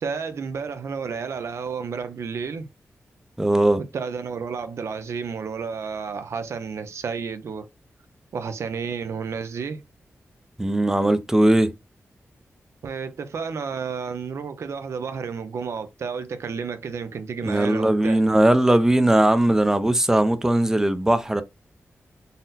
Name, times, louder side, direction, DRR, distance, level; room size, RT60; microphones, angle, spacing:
voice 1, 0.0-2.7 3.8-7.7 8.3-9.8 12.8-18.2, right 5 dB, 75° right, 0.5 m, -31 dB
voice 2, 3.4-3.8 10.6-11.7 17.4-21.4, right 1 dB, 10° right, 0.5 m, -19 dB
4.0 x 2.1 x 4.0 m
wide cardioid pair, 90°, 5 cm